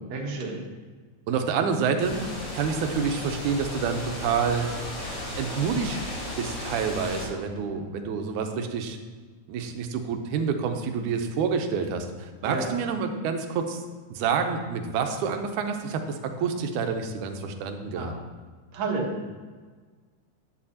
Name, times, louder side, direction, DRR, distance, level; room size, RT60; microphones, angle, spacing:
voice 1, 0.1-0.6 12.4-12.7 17.9-18.1 18.7-19.2, right 3 dB, 65° right, 0 dB, 2.5 m, -30 dB
voice 2, 1.3-2.2 2.5-4.7 5.4-6.0 6.4-9.0 9.5-13.8 14.1-18.1, right 6 dB, 85° right, 6 dB, 2.2 m, -28 dB
sound 1, 2.0-7.3, left 1 dB, 45° left, 3.7 m, -35 dB
11.0 x 8.9 x 2.8 m, 1.5 s
omnidirectional pair, 3.5 m